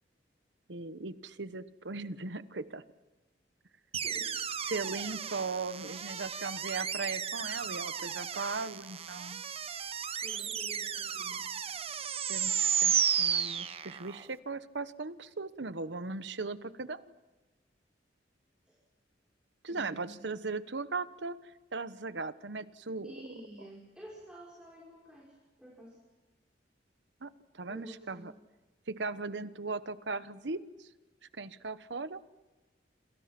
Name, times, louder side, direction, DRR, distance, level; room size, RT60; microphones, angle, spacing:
voice 1, 0.7-2.8 4.7-9.4 12.3-17.1 19.6-21.4 21.7-23.1 27.2-28.3 28.9-30.9 31.4-32.2, right 3 dB, 75° right, 13 dB, 1.1 m, -38 dB
sound 1, 3.9-14.2, right 8 dB, 35° right, 0.9 m, -33 dB
voice 2, 4.0-4.3 10.2-11.5 18.7-18.8 19.7-20.2 23.0-26.0 27.7-28.3, equal, 5° right, -3 dB, 5.8 m, -50 dB
28.0 x 27.5 x 6.0 m, 1.2 s
head